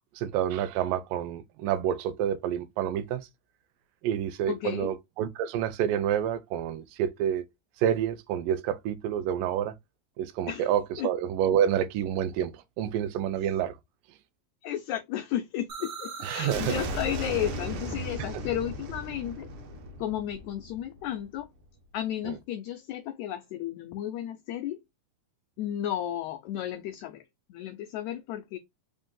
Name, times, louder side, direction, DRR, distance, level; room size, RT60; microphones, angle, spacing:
voice 1, 0.2-3.3 4.0-7.4 7.8-9.7 10.2-13.8 16.2-16.8 18.2-18.3 22.3-22.4, right 10 dB, 85° right, 2.2 m, -28 dB
voice 2, 4.5-4.9 10.5-10.7 11.0-11.1 14.6-19.5 20.0-21.5 21.9-24.8 25.6-27.2 27.5-28.6, left 11 dB, 90° left, 1.6 m, -33 dB
sound 1, 15.7-21.4, right 1 dB, 70° right, 1.3 m, -36 dB
5.0 x 2.6 x 3.7 m
omnidirectional pair, 3.8 m